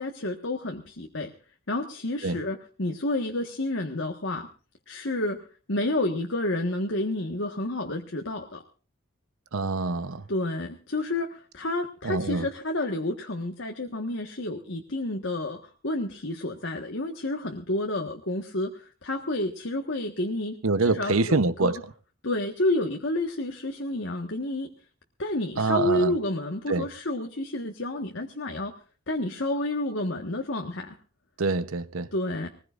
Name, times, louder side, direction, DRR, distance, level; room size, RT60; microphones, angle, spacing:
voice 1, 0.0-1.3 1.7-4.5 4.9-8.6 10.3-21.8 22.2-24.7 25.2-28.7 29.1-31.0 32.1-32.5, left 1 dB, 65° left, 1.5 m, -30 dB
voice 2, 9.5-10.2 12.0-12.5 20.6-21.7 25.6-26.1 26.7-26.9 31.4-32.1, right 3 dB, 80° right, 0.9 m, -25 dB
21.5 x 20.0 x 2.5 m
head